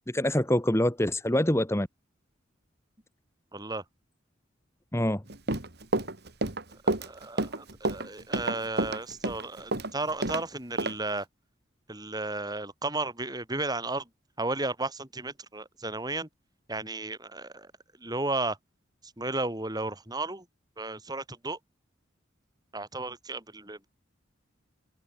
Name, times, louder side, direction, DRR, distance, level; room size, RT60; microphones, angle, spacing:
voice 1, 0.1-1.9 4.9-5.2, left 1 dB, 15° left, 1.5 m, -25 dB
voice 2, 3.5-3.8 6.8-11.3 11.9-14.1 14.4-16.3 16.7-17.7 18.0-18.6 19.0-20.5 20.8-21.6 22.7-23.9, right 2 dB, 20° right, 6.9 m, -34 dB
Run, 5.3-10.4 10.8-10.9, right 2 dB, 55° right, 3.1 m, -29 dB
head